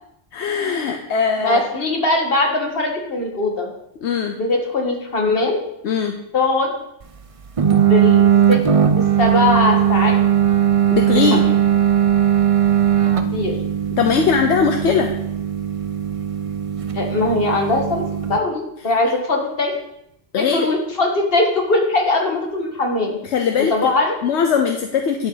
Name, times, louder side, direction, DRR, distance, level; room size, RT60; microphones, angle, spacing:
voice 1, 0.3-1.6 4.0-4.4 5.8-6.2 10.9-11.4 14.0-15.1 20.3-20.7 23.3-23.9 24.2-25.3, left 6 dB, 70° left, 4 dB, 1.1 m, -20 dB
voice 2, 1.4-3.7 4.4-5.6 6.3-6.7 7.7-8.6 9.0-10.2 11.1-11.4 13.3-13.6 16.9-19.8 20.4-23.2 23.7-24.2, left 2 dB, 55° left, 1 dB, 1.9 m, -20 dB
sound 1, 7.6-18.4, right 9 dB, 40° right, 0.5 m, -18 dB
10.5 x 8.6 x 3.9 m, 0.80 s
omnidirectional pair, 1.2 m